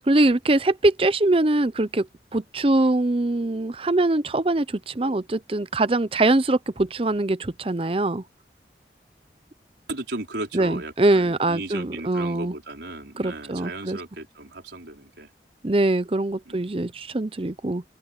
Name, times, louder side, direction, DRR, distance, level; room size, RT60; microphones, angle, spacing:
voice 1, 0.0-8.2 10.5-12.5 13.2-14.0 15.6-17.8, right 2 dB, 30° right, 0.7 m, -23 dB
voice 2, 9.9-15.3 16.5-16.7, right 2 dB, 85° right, 4.6 m, -36 dB
open air
head